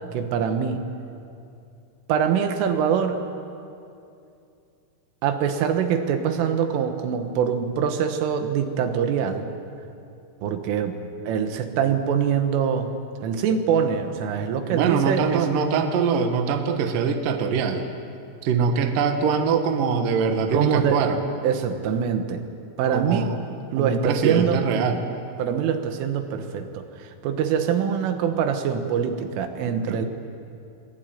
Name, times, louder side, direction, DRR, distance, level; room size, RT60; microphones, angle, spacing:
voice 1, 0.1-0.8 2.1-3.2 5.2-9.5 10.4-11.0 11.3-13.0 13.2-15.4 20.5-21.0 21.4-22.4 22.8-23.3 23.7-24.6 25.4-30.1, right 7 dB, 85° right, 6 dB, 4.0 m, -24 dB
voice 2, 14.7-17.9 18.4-21.2 22.9-23.4 23.8-25.1 29.6-30.0, right 5 dB, 60° right, 6 dB, 2.4 m, -23 dB
23.0 x 19.5 x 9.4 m, 2.6 s
omnidirectional pair, 5.6 m